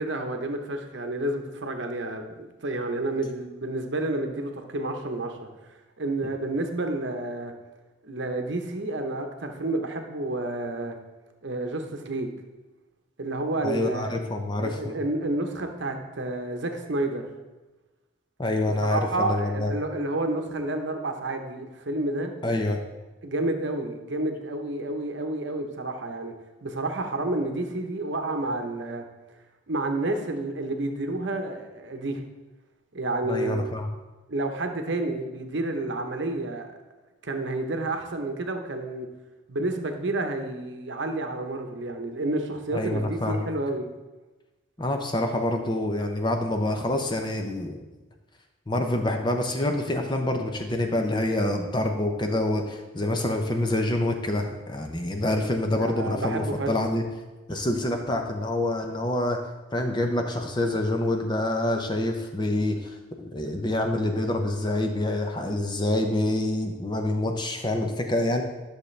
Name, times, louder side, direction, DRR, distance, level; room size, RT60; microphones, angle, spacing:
voice 1, 0.0-5.5 6.0-7.5 8.0-11.0 11.4-12.4 13.2-14.1 14.6-17.3 18.8-22.3 23.2-26.3 26.6-29.0 29.7-32.2 32.9-33.7 34.3-36.7 37.2-39.1 39.5-43.9 55.8-56.7, right 2 dB, 60° right, 5 dB, 0.9 m, -30 dB
voice 2, 13.6-15.0 18.4-19.7 22.4-22.8 33.2-33.9 42.7-43.5 44.8-47.8 48.7-57.0 57.5-59.4 59.7-68.4, left 1 dB, 20° left, 4 dB, 0.6 m, -26 dB
11.0 x 6.6 x 3.3 m, 1.1 s
head